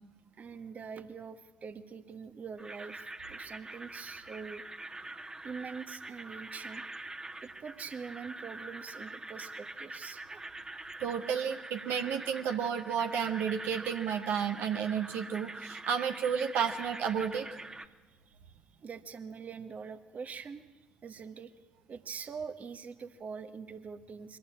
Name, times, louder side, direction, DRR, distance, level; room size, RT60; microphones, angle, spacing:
voice 1, 0.4-4.6 5.4-6.8 7.4-10.4 18.3-18.4 18.8-20.6 21.0-21.5 21.9-24.4, right 6 dB, 40° right, 10 dB, 1.4 m, -44 dB
sound 1, 2.6-17.9, right 2 dB, 20° right, 1.5 m, -45 dB
voice 2, 11.0-17.5, right 7 dB, 65° right, 5 dB, 1.3 m, -32 dB
23.0 x 15.0 x 8.8 m, 1.2 s
hypercardioid pair, 50°, 4 cm